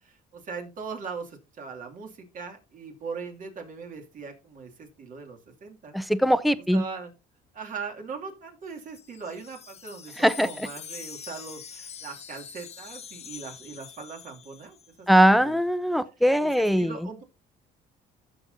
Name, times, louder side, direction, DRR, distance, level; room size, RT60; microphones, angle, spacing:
voice 1, 0.0-5.9 6.7-7.1 7.5-15.6 16.4-17.2, right 5 dB, 50° right, 2.6 m, -40 dB
voice 2, 5.9-6.8 10.2-10.7 15.1-16.9, equal, ahead, 0.7 m, -21 dB
Wind chime, 8.7-14.9, left 7 dB, 40° left, 1.0 m, -44 dB
14.5 x 7.0 x 2.7 m
cardioid pair, 110°, 17 cm